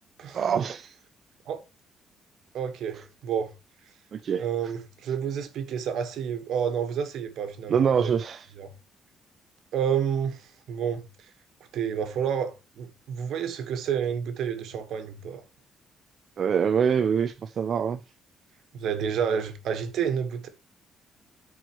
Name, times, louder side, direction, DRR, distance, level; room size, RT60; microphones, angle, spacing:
voice 1, 0.3-0.9 4.1-4.4 7.7-8.5 16.4-18.0, right 7 dB, 45° right, 0.4 m, -24 dB
voice 2, 2.5-3.5 4.4-8.1 8.6-8.7 9.7-11.3 11.7-15.4 18.7-20.5, right 8 dB, 70° right, 1.4 m, -30 dB
13.0 x 4.6 x 3.1 m
cardioid pair, 130°, 0 cm